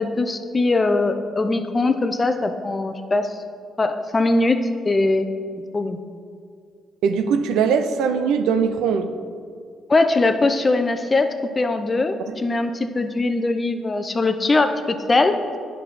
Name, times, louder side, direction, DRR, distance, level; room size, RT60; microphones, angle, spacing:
voice 1, 0.0-3.4 3.8-5.3 5.7-6.0 9.9-11.3 11.6-15.4, left 2 dB, 25° left, 8 dB, 0.6 m, -21 dB
voice 2, 7.0-9.1 12.3-12.4, right 6 dB, 90° right, 8 dB, 0.5 m, -21 dB
9.5 x 5.4 x 4.2 m, 2.2 s
cardioid pair, 90°, 0 cm